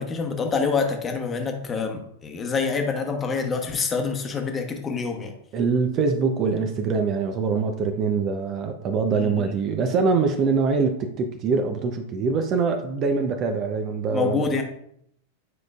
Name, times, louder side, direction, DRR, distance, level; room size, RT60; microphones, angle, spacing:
voice 1, 0.0-5.3 9.1-9.5 14.1-14.6, left 5 dB, 20° left, 1.1 m, -26 dB
voice 2, 5.5-14.5, right 4 dB, 35° right, 0.6 m, -24 dB
9.4 x 5.1 x 2.4 m
figure-of-eight pair, 90°, 0 cm